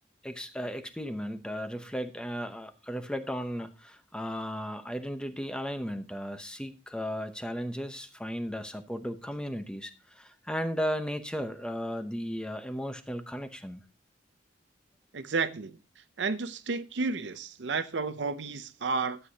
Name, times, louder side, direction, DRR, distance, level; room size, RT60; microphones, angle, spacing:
voice 1, 0.2-13.8, equal, 5° left, 0.8 m, -35 dB
voice 2, 15.1-15.8 16.2-19.2, right 4 dB, 70° right, 0.6 m, -31 dB
12.0 x 8.3 x 2.8 m
head